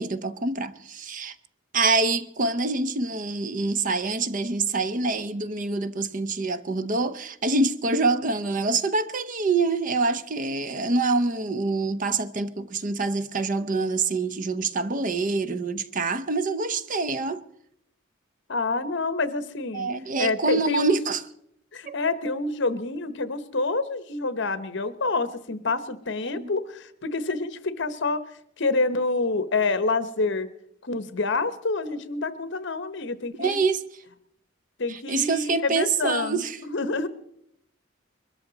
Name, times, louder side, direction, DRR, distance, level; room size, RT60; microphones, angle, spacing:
voice 1, 0.0-1.3 1.7-17.4 19.7-21.2 21.9-22.0 26.4-26.5 33.4-33.8 34.9-36.6, right 3 dB, 40° right, 0.7 m, -26 dB
voice 2, 18.5-19.9 20.2-21.0 21.7-28.2 28.6-30.5 30.8-33.6 34.8-37.1, left 3 dB, 60° left, 1.0 m, -27 dB
22.0 x 13.5 x 4.0 m
head